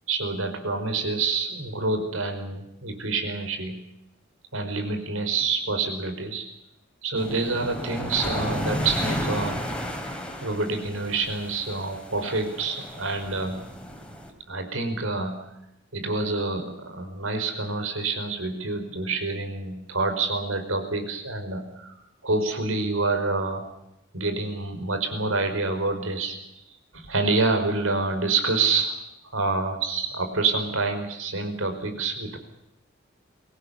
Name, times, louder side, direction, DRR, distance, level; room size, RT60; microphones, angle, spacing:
voice 1, 0.1-3.8 4.5-6.5 7.0-9.6 10.4-13.7 14.5-15.5 15.9-22.0 22.2-23.7 24.1-29.0 29.3-32.4, right 3 dB, 80° right, 5 dB, 5.2 m, -27 dB
sound 1, 7.2-14.3, equal, 5° left, 3.9 m, -33 dB
24.0 x 18.0 x 8.3 m, 0.84 s
head